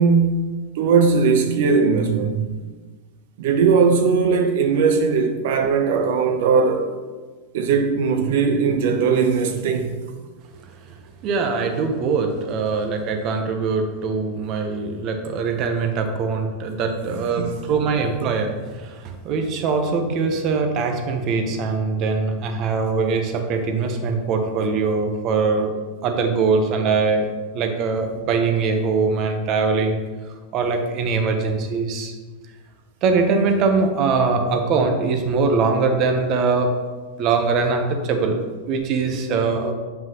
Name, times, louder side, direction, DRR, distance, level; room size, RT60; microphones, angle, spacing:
voice 1, 0.0-2.4 3.4-6.9 7.5-9.9 17.1-17.7, right 5 dB, 70° right, 0.8 m, -19 dB
voice 2, 11.2-25.7 26.0-27.3 27.5-30.0 30.5-32.1 33.0-36.7 37.2-38.4 38.7-39.7, right 4 dB, 45° right, 1.0 m, -22 dB
8.0 x 5.4 x 3.0 m
hypercardioid pair, 120°, 0 cm